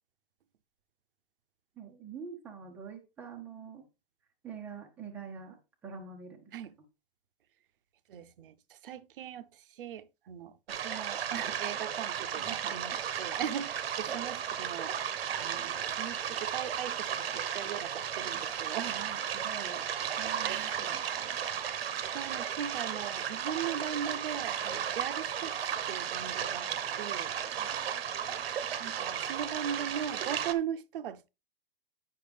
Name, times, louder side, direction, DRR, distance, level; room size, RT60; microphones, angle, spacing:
voice 1, 1.8-3.9 4.4-6.5 12.4-12.6 14.0-14.1 18.9-21.4 27.6-27.7, right 6 dB, 5° right, 0.7 m, -46 dB
voice 2, 8.1-15.0 15.4-19.0 20.4-20.8 22.1-27.3 28.8-31.3, right 9 dB, 65° right, 0.7 m, -39 dB
sound 1, 10.7-30.5, right 9 dB, 85° right, 1.1 m, -34 dB
8.5 x 5.8 x 3.4 m
supercardioid pair, 175°, 29 cm